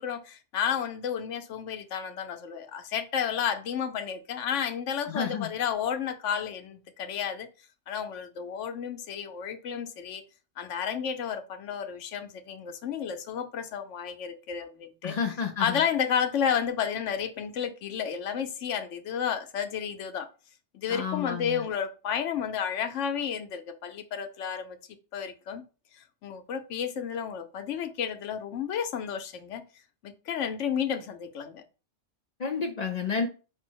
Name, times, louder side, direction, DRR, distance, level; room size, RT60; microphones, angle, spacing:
voice 1, 0.0-7.5 7.9-10.2 10.6-15.2 15.6-20.3 20.7-24.8 25.1-25.6 26.2-29.6 30.0-31.6, left 8 dB, 80° left, 1.0 m, -31 dB
voice 2, 5.1-5.5 15.0-15.8 20.9-21.7 32.4-33.3, left 5 dB, 50° left, 0.5 m, -31 dB
5.2 x 2.0 x 4.5 m
omnidirectional pair, 1.3 m